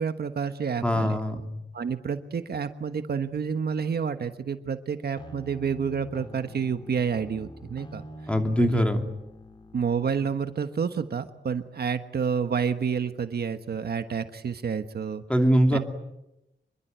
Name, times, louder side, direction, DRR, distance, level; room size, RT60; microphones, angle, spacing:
voice 1, 0.0-1.2 1.7-8.0 8.6-8.8 9.7-15.2 15.7-15.8, right 6 dB, 60° right, 9 dB, 1.3 m, -29 dB
voice 2, 0.8-1.5 8.3-9.0 15.3-15.8, equal, 5° left, 5 dB, 2.8 m, -22 dB
sound 1, 5.2-10.3, equal, 25° left, 2.2 m, -45 dB
26.5 x 23.0 x 9.4 m, 0.89 s
wide cardioid pair, 160°, 19 cm